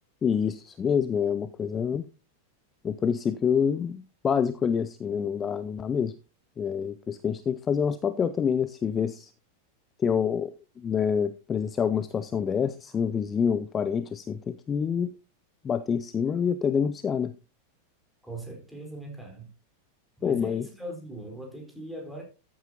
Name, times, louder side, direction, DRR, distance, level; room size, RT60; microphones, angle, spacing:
voice 1, 0.2-2.0 2.8-6.1 6.6-9.3 10.0-10.5 10.8-15.1 15.6-17.3 20.2-20.7, left 7 dB, 20° left, 0.5 m, -27 dB
voice 2, 18.2-19.5 20.2-22.2, right 1 dB, ahead, 4.2 m, -40 dB
14.0 x 8.7 x 2.9 m
figure-of-eight pair, 90°, 0 cm